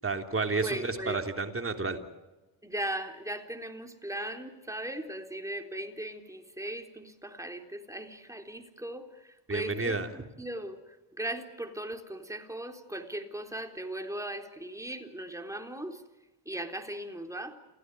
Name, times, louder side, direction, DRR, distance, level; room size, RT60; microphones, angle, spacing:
voice 1, 0.0-2.0 9.5-10.1, right 3 dB, 25° right, 5 dB, 3.3 m, -31 dB
voice 2, 0.6-1.2 2.6-9.1 9.5-10.8 11.2-16.0 16.5-17.5, right 1 dB, 5° right, 4 dB, 3.9 m, -38 dB
28.0 x 17.0 x 9.4 m, 1.1 s
cardioid pair, 65°, 47 cm